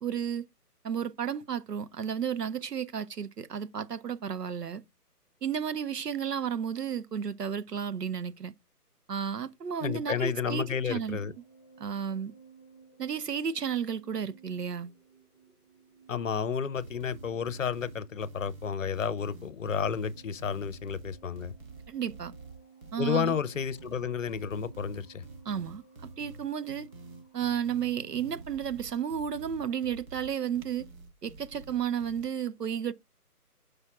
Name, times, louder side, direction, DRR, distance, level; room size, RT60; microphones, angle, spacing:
voice 1, 0.0-0.5 0.8-4.8 5.4-8.5 9.1-11.2 11.8-12.3 13.0-14.9 21.9-22.3 22.9-23.3 25.5-25.8 26.2-26.9 27.3-30.9 31.2-32.9, right 8 dB, 80° right, 0.9 m, -32 dB
sound 1, 9.7-28.7, right 6 dB, 35° right, 5.3 m, -56 dB
voice 2, 9.8-11.3 16.1-21.5 23.0-25.2, left 7 dB, 55° left, 0.7 m, -31 dB
sound 2, 16.8-32.2, right 3 dB, 60° right, 1.6 m, -48 dB
9.7 x 5.2 x 2.4 m
figure-of-eight pair, 150°, 47 cm